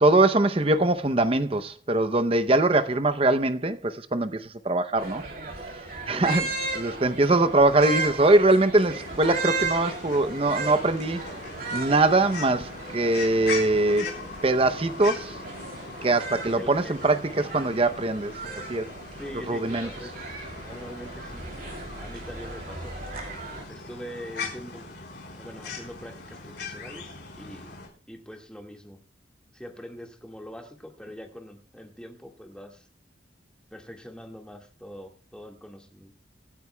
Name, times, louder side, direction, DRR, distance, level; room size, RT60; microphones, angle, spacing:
voice 1, 0.0-5.2 6.1-6.5 6.7-11.2 11.7-14.1 14.4-15.4 16.0-18.3 18.7-18.9 19.5-19.9, right 2 dB, 30° right, 0.6 m, -22 dB
sound 1, 5.0-23.6, right 3 dB, 50° right, 2.9 m, -36 dB
sound 2, 8.7-27.9, left 4 dB, 60° left, 3.9 m, -40 dB
voice 2, 13.9-14.3 16.6-17.0 19.2-20.2 20.7-21.5 22.0-23.0 23.7-24.9 25.3-27.8 28.1-29.0 29.5-32.9 33.7-36.1, equal, 5° left, 1.7 m, -43 dB
25.0 x 9.2 x 2.2 m
head